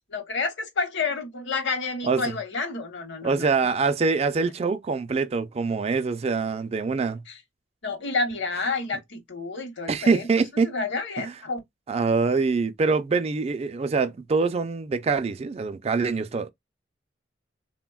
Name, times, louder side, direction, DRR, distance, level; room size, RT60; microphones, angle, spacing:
voice 1, 0.1-3.4 7.3-7.4 7.8-10.3 10.6-11.6, left 4 dB, 65° left, 0.9 m, -29 dB
voice 2, 2.0-2.3 3.2-7.2 9.9-10.7 11.2-11.3 11.9-16.5, right 4 dB, 30° right, 0.3 m, -24 dB
3.3 x 2.1 x 2.2 m
head